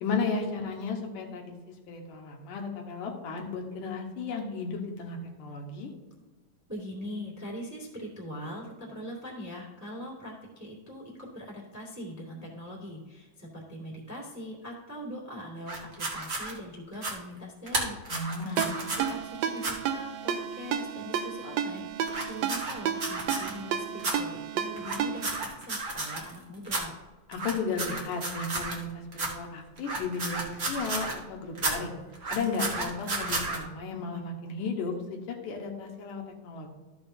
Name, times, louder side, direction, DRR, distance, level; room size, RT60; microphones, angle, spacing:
voice 1, 0.0-5.9 18.1-18.7 27.3-32.0 32.3-36.7, left 4 dB, 80° left, 1 dB, 2.8 m, -34 dB
voice 2, 6.7-26.9, equal, 5° right, -3 dB, 1.6 m, -42 dB
sound 1, 15.7-16.5 16.9-17.1 17.7-19.1 19.6-19.7 22.1-23.5 24.0-24.1 24.8-26.4 26.6-26.8 27.3-28.8 29.1-29.3 29.8-31.2 31.5-31.7 32.1-33.6, right 2 dB, 40° right, 1.1 m, -32 dB
Ringtone, 18.6-25.4, right 8 dB, 75° right, 1.6 m, -32 dB
13.5 x 7.0 x 2.7 m, 1.2 s
omnidirectional pair, 3.7 m